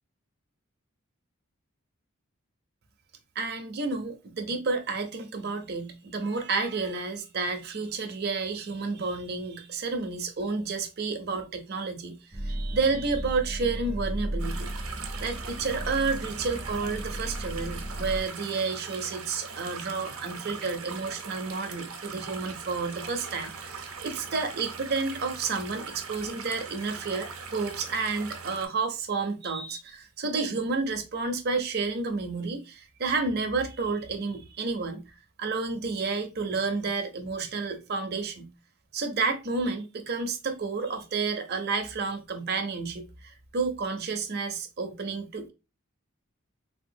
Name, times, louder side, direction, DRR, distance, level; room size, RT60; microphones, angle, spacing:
voice 1, 3.4-12.2 12.4-14.7 15.2-35.1 35.4-38.5 38.9-45.5, right 4 dB, 50° right, 0.6 m, -30 dB
sound 1, 12.3-18.2, right 1 dB, 5° right, 0.6 m, -35 dB
sound 2, 14.4-28.7, right 5 dB, 90° right, 0.7 m, -40 dB
3.5 x 2.4 x 2.6 m
head